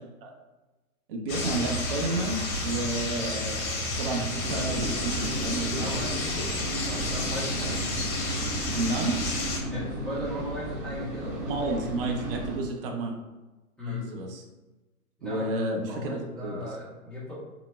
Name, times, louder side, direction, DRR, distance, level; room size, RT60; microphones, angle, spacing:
voice 1, 1.1-5.9 8.7-9.2 11.5-13.2 13.9-14.4 15.2-16.6, right 2 dB, 40° right, 1 dB, 0.6 m, -31 dB
sound 1, 1.3-9.6, left 2 dB, 65° left, 1.0 m, -31 dB
sound 2, 4.4-12.6, right 1 dB, 20° right, 1.0 m, -34 dB
voice 2, 5.7-6.6 6.9-7.8 9.7-11.8 13.8-14.1 15.2-15.5 15.9-17.4, left 1 dB, ahead, -10 dB, 0.7 m, -37 dB
3.0 x 2.1 x 3.3 m, 1.1 s
hypercardioid pair, 135°, 44 cm